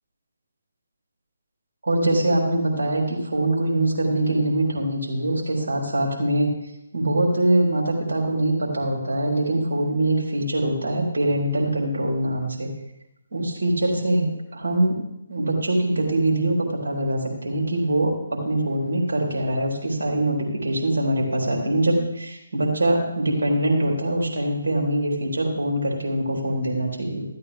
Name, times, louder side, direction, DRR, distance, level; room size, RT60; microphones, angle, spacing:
voice 1, 1.8-6.5 6.9-12.7 13.3-15.0 15.3-27.2, right 1 dB, 60° right, -2 dB, 4.1 m, -23 dB
14.0 x 14.0 x 3.6 m, 0.85 s
figure-of-eight pair, 145°, 0 cm